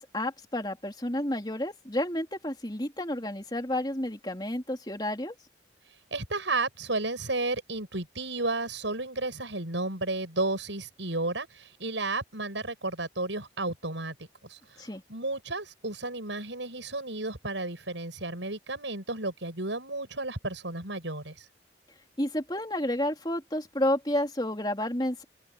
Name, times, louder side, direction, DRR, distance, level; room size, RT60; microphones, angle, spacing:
voice 1, 0.0-5.3 14.8-15.0 22.2-25.2, left 1 dB, 20° left, 3.5 m, -30 dB
voice 2, 6.1-14.1 14.4-21.5, right 2 dB, 80° right, 7.5 m, -33 dB
head